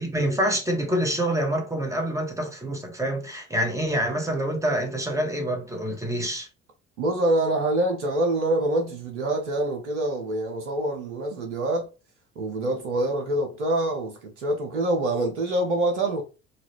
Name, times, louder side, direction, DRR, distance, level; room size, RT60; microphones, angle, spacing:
voice 1, 0.0-6.5, right 1 dB, 10° right, 1.2 m, -26 dB
voice 2, 7.0-11.9 12.4-16.2, right 1 dB, 75° right, 0.8 m, -25 dB
4.0 x 2.4 x 2.9 m
figure-of-eight pair, 55°, 35 cm